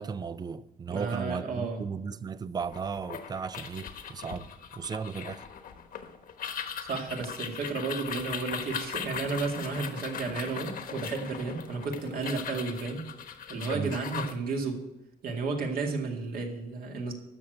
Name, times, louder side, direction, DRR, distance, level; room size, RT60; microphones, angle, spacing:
voice 1, 0.0-5.5 13.7-14.0, right 6 dB, 25° right, 0.4 m, -36 dB
voice 2, 0.9-1.8 6.8-13.1 13.5-14.8 15.2-17.1, right 4 dB, 60° right, 2.2 m, -32 dB
sound 1, 2.6-14.3, left 7 dB, 60° left, 1.1 m, -39 dB
13.0 x 6.5 x 7.9 m
cardioid pair, 155°, 17 cm